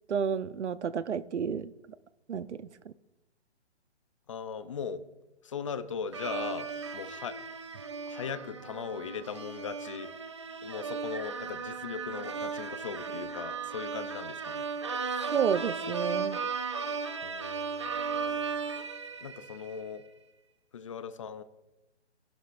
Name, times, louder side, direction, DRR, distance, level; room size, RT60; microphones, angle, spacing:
voice 1, 0.1-1.7 2.3-2.7 15.3-16.4, right 7 dB, 80° right, 15 dB, 0.7 m, -31 dB
voice 2, 4.3-5.0 5.4-6.7 6.9-7.4 8.1-10.1 10.6-14.6 17.2-18.6 19.2-20.0 20.7-21.4, left 6 dB, 30° left, 13 dB, 0.6 m, -39 dB
sound 1, 6.1-19.8, right 5 dB, 25° right, 0.4 m, -36 dB
23.5 x 11.5 x 2.6 m, 0.99 s
hypercardioid pair, 155°, 34 cm